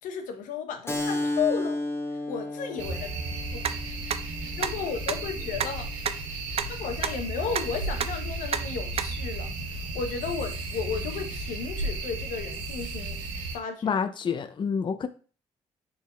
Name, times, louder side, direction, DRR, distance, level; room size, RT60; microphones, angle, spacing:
voice 1, 0.0-1.8 2.3-3.6 4.6-5.9 6.7-13.2 13.5-14.1, left 6 dB, 75° left, 0.7 m, -34 dB
Keyboard (musical), 0.9-6.0, left 1 dB, 20° left, 1.0 m, -34 dB
sound 1, 2.8-13.6, right 2 dB, 85° right, 0.8 m, -34 dB
sound 2, 3.6-3.7 4.1-4.2 4.6-4.7 5.1-5.2 5.6-5.7 6.1-6.2 6.6-6.7 7.0-7.1 7.6-7.7 8.0-8.1 8.5-8.6 9.0-9.1, right 8 dB, 45° right, 0.4 m, -26 dB
voice 2, 13.8-15.1, left 6 dB, 35° left, 0.4 m, -28 dB
4.1 x 3.4 x 2.2 m
hypercardioid pair, 50°, 14 cm